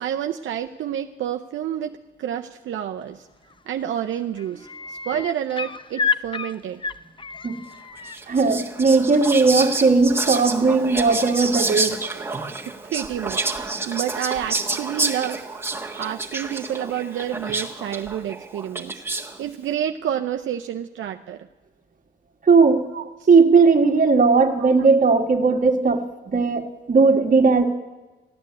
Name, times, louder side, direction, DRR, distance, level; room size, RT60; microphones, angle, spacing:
voice 1, 0.0-3.3 3.7-6.8 12.9-15.4 16.0-19.0 19.4-21.4 22.9-23.3 24.6-24.7, right 10 dB, 70° right, 5 dB, 0.6 m, -29 dB
sound 1, 3.5-3.8 4.1-8.2 9.8-9.9, left 5 dB, 25° left, 0.6 m, -29 dB
Whispering, 8.1-19.4, right 3 dB, 10° right, 1.6 m, -29 dB
voice 2, 8.3-12.0 22.5-22.8 23.3-27.7, right 4 dB, 40° right, 4 dB, 1.6 m, -17 dB
14.5 x 9.7 x 8.4 m, 1.2 s
cardioid pair, 85°, 20 cm